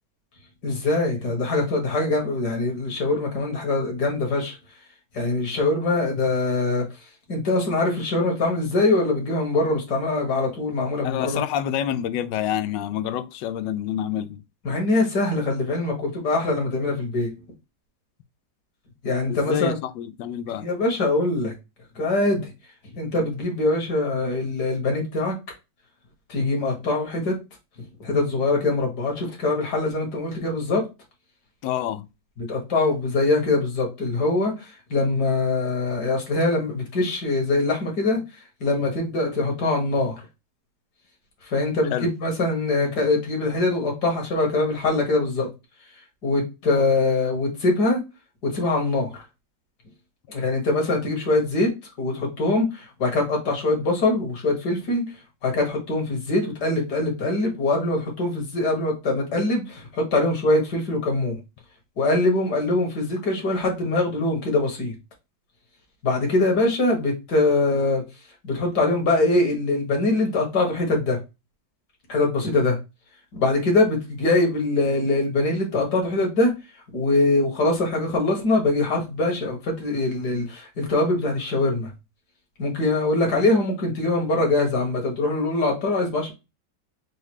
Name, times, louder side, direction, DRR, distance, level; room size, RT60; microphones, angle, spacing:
voice 1, 0.6-4.6 5.1-6.8 7.3-11.4 14.6-17.3 19.0-19.8 20.6-21.5 22.0-22.5 22.9-25.3 26.3-27.4 28.0-30.8 32.4-38.2 38.6-40.2 41.5-45.5 46.2-48.0 48.4-49.1 50.3-51.7 52.0-55.0 55.4-61.4 62.0-64.9 66.0-68.0 68.4-71.2 72.1-72.8 73.3-76.5 76.9-81.9 82.6-86.3, left 2 dB, 65° left, 2.1 m, -23 dB
voice 2, 11.0-14.4 19.3-20.7 31.6-32.1 41.9-42.1, left 10 dB, 90° left, 1.2 m, -27 dB
4.7 x 2.2 x 4.5 m
omnidirectional pair, 1.9 m